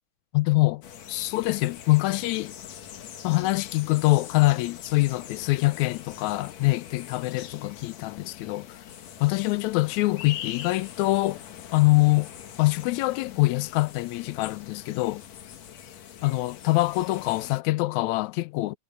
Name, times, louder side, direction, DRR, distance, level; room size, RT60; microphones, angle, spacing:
voice 1, 0.3-0.8 1.1-2.5 3.2-8.8 9.2-11.4 11.7-12.3 12.6-15.2 16.2-18.8, left 20 dB, 80° left, 1.7 m, -24 dB
sound 1, 0.8-17.6, left 10 dB, 60° left, 2.4 m, -43 dB
omnidirectional pair, 3.8 m